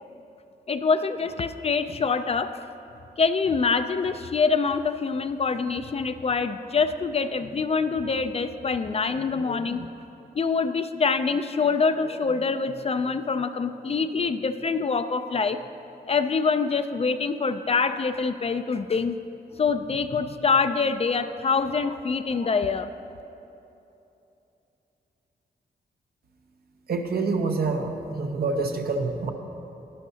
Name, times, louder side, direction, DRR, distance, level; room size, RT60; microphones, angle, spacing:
voice 1, 0.7-2.5 3.2-9.9 10.4-15.6 16.1-19.2 19.6-22.9, left 5 dB, 40° left, 10 dB, 0.4 m, -25 dB
voice 2, 26.9-29.3, right 4 dB, 65° right, 4 dB, 0.9 m, -26 dB
12.0 x 10.5 x 2.8 m, 2.9 s
cardioid pair, 75°, 17 cm